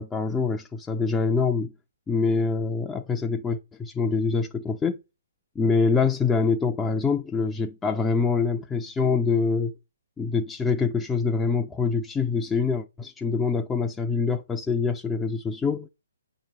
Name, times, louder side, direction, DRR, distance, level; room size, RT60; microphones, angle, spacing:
voice 1, 0.0-1.7 2.1-5.0 5.6-9.7 10.2-15.9, left 4 dB, 10° left, 0.3 m, -25 dB
8.6 x 3.0 x 5.4 m
hypercardioid pair, 140°, 0 cm